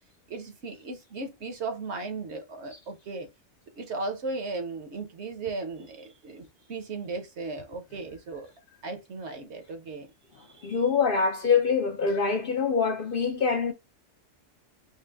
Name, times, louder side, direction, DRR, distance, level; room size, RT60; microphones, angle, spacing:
voice 1, 0.3-3.3 3.8-8.5 8.8-10.1 10.4-10.8, right 3 dB, 65° right, 1.1 m, -36 dB
voice 2, 10.6-13.7, left 5 dB, 55° left, 0.7 m, -24 dB
4.7 x 2.1 x 3.4 m
omnidirectional pair, 1.3 m